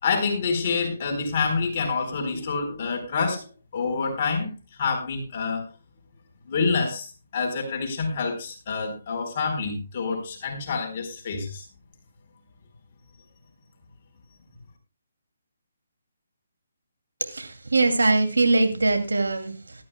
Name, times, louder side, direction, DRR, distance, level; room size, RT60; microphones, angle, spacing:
voice 1, 0.0-4.5 4.8-5.7 6.5-11.7, left 4 dB, 40° left, 3 dB, 4.1 m, -27 dB
voice 2, 17.2-19.8, right 3 dB, 90° right, 6 dB, 2.4 m, -22 dB
19.0 x 13.0 x 2.2 m, 0.27 s
hypercardioid pair, 155°, 0 cm